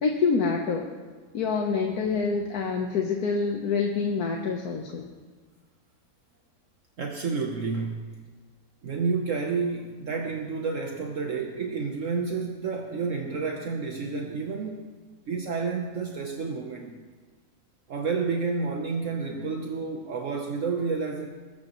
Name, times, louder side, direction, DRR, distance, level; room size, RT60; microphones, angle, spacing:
voice 1, 0.0-0.9 1.3-5.1, left 5 dB, 85° left, 2 dB, 1.5 m, -26 dB
voice 2, 7.0-8.2 8.8-14.8 15.3-16.9 17.9-21.3, right 4 dB, 60° right, 2 dB, 1.3 m, -30 dB
22.5 x 14.0 x 3.0 m, 1.5 s
omnidirectional pair, 1.6 m